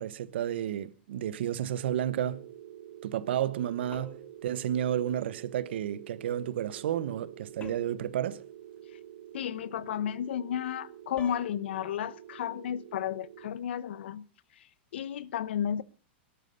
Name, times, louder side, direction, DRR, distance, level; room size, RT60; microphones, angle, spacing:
voice 1, 0.0-2.5 3.0-8.4, right 10 dB, 70° right, 1.1 m, -31 dB
sound 1, 1.7-13.5, right 11 dB, 50° right, 2.4 m, -48 dB
sound 2, 3.9-4.4 7.6-8.1 11.2-11.5, left 5 dB, 20° left, 2.3 m, -46 dB
voice 2, 9.3-14.2 14.9-15.8, left 9 dB, 75° left, 1.0 m, -33 dB
18.5 x 12.0 x 5.6 m
supercardioid pair, 160°, 6 cm